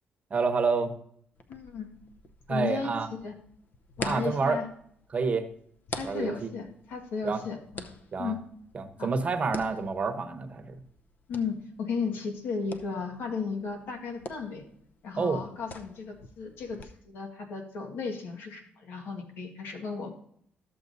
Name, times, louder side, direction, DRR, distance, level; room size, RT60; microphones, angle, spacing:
voice 1, 0.3-0.9 2.5-3.1 4.0-4.6 5.1-5.5 6.0-6.5 7.2-7.4 8.1-8.3 8.7-10.8 15.2-15.4, right 4 dB, 40° right, 8 dB, 0.9 m, -28 dB
sound 1, 1.4-16.9, left 3 dB, 55° left, 0.7 m, -46 dB
voice 2, 1.5-1.9 2.5-3.0 3.2-3.3 4.0-4.7 5.9-7.9 8.2-8.4 9.0-9.1 11.3-14.6 15.0-20.1, left 5 dB, 80° left, 3 dB, 1.7 m, -35 dB
13.0 x 7.0 x 2.7 m, 0.66 s
cardioid pair, 100°, 4 cm